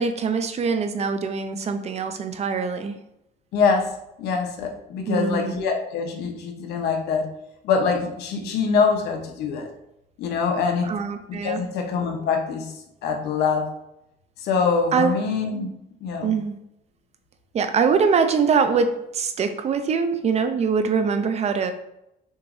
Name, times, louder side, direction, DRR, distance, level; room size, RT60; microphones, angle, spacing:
voice 1, 0.0-3.0 5.1-5.6 10.9-11.6 14.9-15.2 16.2-16.6 17.5-21.7, right 5 dB, 40° right, 8 dB, 0.5 m, -23 dB
voice 2, 3.5-3.9 4.2-7.3 7.6-9.7 10.2-10.9 11.3-12.8 13.0-13.7 14.4-15.7 16.0-16.3, left 5 dB, 80° left, 3 dB, 0.9 m, -24 dB
6.5 x 3.0 x 2.6 m, 0.83 s
cardioid pair, 110°, 17 cm